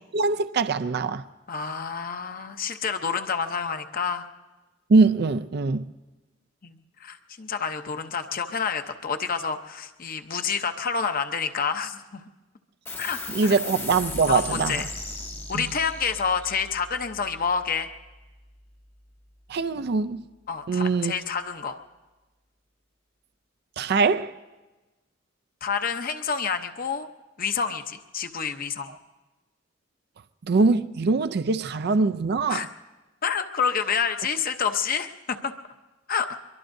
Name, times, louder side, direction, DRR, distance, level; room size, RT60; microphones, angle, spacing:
voice 1, 0.1-1.2 4.9-5.9 13.3-14.8 15.5-15.7 19.5-20.2 20.7-21.1 23.8-24.3 30.5-32.7, right 4 dB, 55° right, 0.4 m, -22 dB
voice 2, 1.5-4.2 6.6-12.2 13.0-13.5 14.3-14.9 15.5-17.9 20.5-21.8 25.6-27.1 27.4-29.0 32.5-32.7 33.2-35.5 36.1-36.3, left 6 dB, 50° left, 0.8 m, -28 dB
sound 1, 12.9-19.8, left 2 dB, 10° left, 0.7 m, -38 dB
24.0 x 22.5 x 2.7 m
head